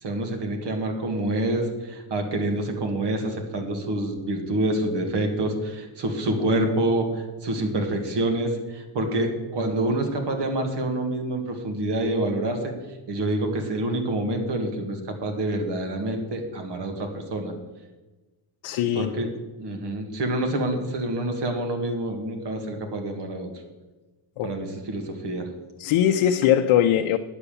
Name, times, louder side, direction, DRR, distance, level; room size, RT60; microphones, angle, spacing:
voice 1, 0.0-12.7 13.1-17.5 19.0-19.3 19.6-23.5 24.4-25.5, right 1 dB, 55° right, 4 dB, 2.0 m, -27 dB
voice 2, 18.6-19.1 24.4-24.5 25.8-27.2, left 10 dB, 80° left, 6 dB, 0.7 m, -21 dB
9.8 x 7.0 x 6.9 m, 1.2 s
cardioid pair, 170°, 48 cm